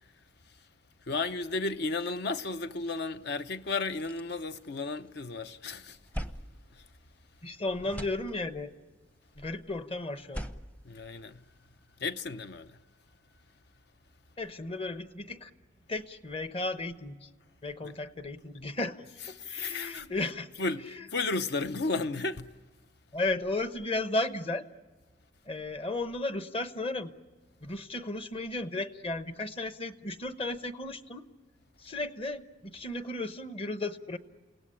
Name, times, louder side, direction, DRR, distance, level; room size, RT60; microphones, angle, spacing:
voice 1, 1.1-6.0 10.8-11.4 12.0-12.7 19.4-20.1 20.6-22.5, left 3 dB, 65° left, 0.8 m, -33 dB
sound 1, 3.1-3.2 3.6-5.3 5.6-7.5 7.8-8.8 10.1-11.8, equal, 10° left, 0.7 m, -43 dB
voice 2, 7.4-8.7 9.4-10.5 14.4-15.5 15.9-17.3 17.6-20.5 20.8-21.1 23.1-24.7 25.5-27.1 27.6-31.2 31.8-34.2, left 2 dB, 30° left, 1.0 m, -34 dB
29.0 x 17.5 x 9.9 m
head